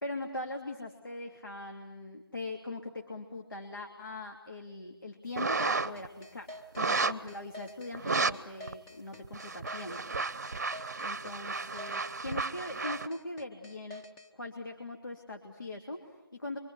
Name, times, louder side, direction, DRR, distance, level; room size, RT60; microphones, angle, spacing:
voice 1, 0.0-10.0 11.0-14.0 14.3-16.6, left 2 dB, 60° left, 2 dB, 3.2 m, -41 dB
sound 1, 5.4-6.1 6.8-7.3 7.9-8.3 8.7-8.8 9.2-13.1, right 4 dB, 40° right, 0.9 m, -32 dB
sound 2, 6.0-14.3, left 1 dB, 10° left, 1.0 m, -48 dB
27.0 x 24.5 x 8.3 m, 1.0 s
figure-of-eight pair, 160°, 13 cm